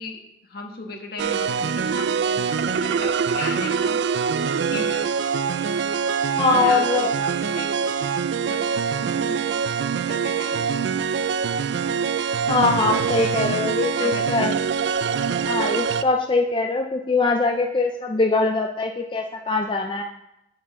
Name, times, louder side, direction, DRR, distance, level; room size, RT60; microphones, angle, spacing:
voice 1, 0.0-4.0 4.6-5.1 6.5-8.1 8.4-9.5 10.1-10.7 14.0-14.6, left 3 dB, 60° left, 3 dB, 1.3 m, -37 dB
sound 1, 1.2-16.0, right 6 dB, 80° right, 0.4 m, -24 dB
voice 2, 6.4-7.1 12.5-14.5 15.5-20.0, left 3 dB, 30° left, 3 dB, 0.5 m, -22 dB
9.3 x 7.1 x 3.7 m, 0.86 s
head